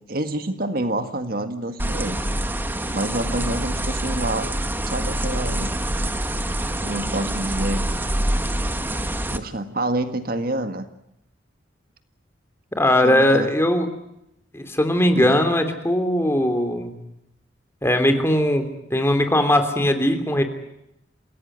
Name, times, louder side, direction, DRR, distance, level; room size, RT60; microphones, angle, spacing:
voice 1, 0.1-2.2 2.9-4.5 4.9-5.8 6.8-7.9 9.3-10.9 13.0-13.5 15.2-15.4, right 1 dB, 50° right, 9 dB, 1.7 m, -27 dB
sound 1, 1.8-9.4, right 1 dB, 10° right, 1.3 m, -26 dB
voice 2, 12.7-13.9 14.5-17.0 17.8-20.4, left 1 dB, 15° left, 7 dB, 3.1 m, -19 dB
27.5 x 16.5 x 9.5 m, 0.84 s
head